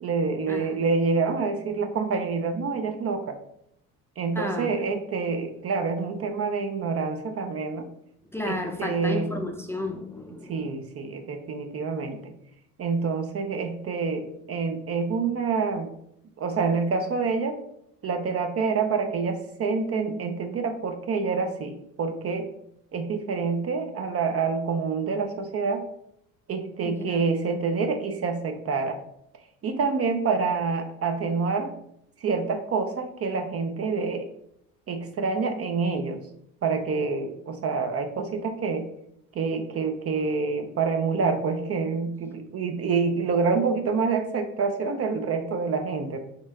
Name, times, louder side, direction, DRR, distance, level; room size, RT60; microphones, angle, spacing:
voice 1, 0.0-3.4 4.2-7.9 8.5-9.4 10.5-12.3 12.8-15.9 16.4-17.6 18.0-22.5 22.9-25.8 26.5-29.0 29.6-31.7 32.2-34.3 34.9-36.2 36.6-38.9 39.3-46.2, right 4 dB, 35° right, 6 dB, 0.5 m, -27 dB
voice 2, 4.3-4.7 8.3-10.7 26.8-27.3, left 1 dB, 5° left, 3 dB, 0.6 m, -32 dB
4.3 x 2.5 x 3.9 m, 0.75 s
supercardioid pair, 80°, 40 cm